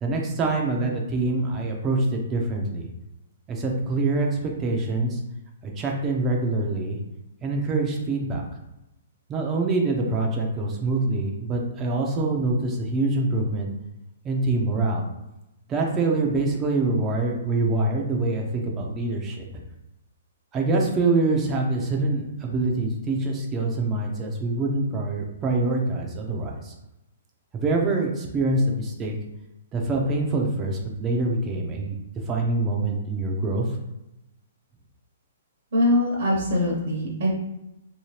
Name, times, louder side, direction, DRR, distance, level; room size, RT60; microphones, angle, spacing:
voice 1, 0.0-2.9 3.5-5.2 5.6-7.0 7.4-8.4 9.3-13.7 14.2-15.0 15.7-19.6 20.5-26.7 27.5-29.2 29.7-33.7, right 2 dB, 20° right, 0 dB, 0.7 m, -25 dB
voice 2, 35.7-37.3, left 1 dB, 60° right, -3 dB, 1.1 m, -22 dB
3.1 x 2.9 x 3.2 m, 0.92 s
hypercardioid pair, 135°, 0 cm